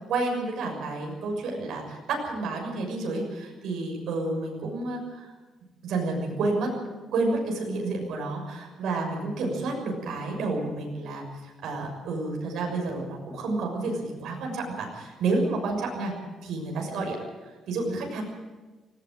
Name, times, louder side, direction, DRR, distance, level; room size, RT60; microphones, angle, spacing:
voice 1, 0.1-5.3 5.8-6.7 7.1-16.1 16.4-17.2 17.7-18.2, right 3 dB, 70° right, 1 dB, 6.6 m, -30 dB
19.0 x 17.5 x 7.8 m, 1.2 s
cardioid pair, 175°, 0 cm